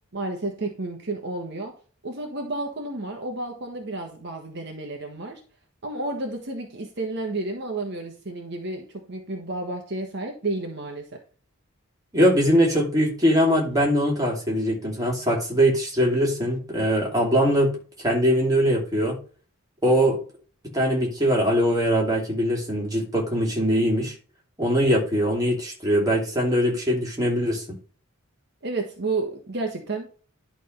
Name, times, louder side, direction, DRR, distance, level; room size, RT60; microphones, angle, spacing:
voice 1, 0.1-1.7 2.0-5.4 5.8-11.2 28.6-30.1, right 2 dB, 55° right, 2 dB, 1.4 m, -31 dB
voice 2, 12.1-17.7 18.0-19.2 19.8-20.2 20.7-24.1 24.6-27.6, equal, 15° right, -2 dB, 2.9 m, -22 dB
11.0 x 3.7 x 5.4 m, 0.40 s
head